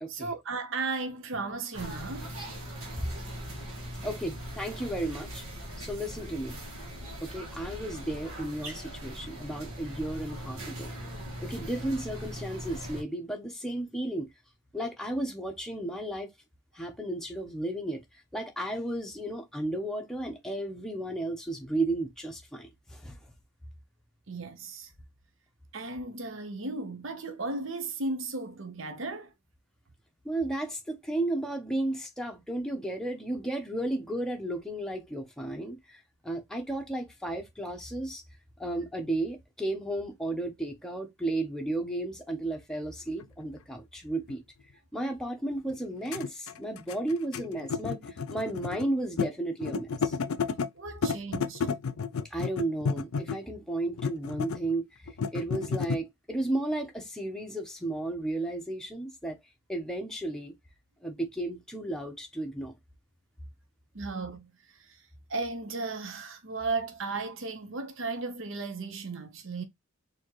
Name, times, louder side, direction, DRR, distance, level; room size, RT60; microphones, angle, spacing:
voice 1, 0.1-2.4 24.3-24.9 25.7-29.3 50.7-51.7 63.9-64.5 64.8-65.0 65.3-69.6, right 3 dB, 60° right, 0.8 m, -35 dB
sound 1, 1.7-13.0, equal, 80° right, 1.5 m, -40 dB
voice 2, 4.0-5.4 5.8-6.6 7.2-10.9 11.4-14.3 14.7-16.3 16.7-23.2 30.2-38.2 38.6-44.4 44.9-50.2 52.2-59.4 59.7-60.5 61.0-62.7, right 1 dB, 5° left, 0.7 m, -33 dB
sound 2, 43.2-43.3 44.3-44.4 45.7-45.8 46.1-48.9 49.2-49.3 49.6-50.7 51.0-53.5 54.0-54.7 55.1-56.0, left 5 dB, 75° left, 0.4 m, -31 dB
4.2 x 2.8 x 3.0 m
head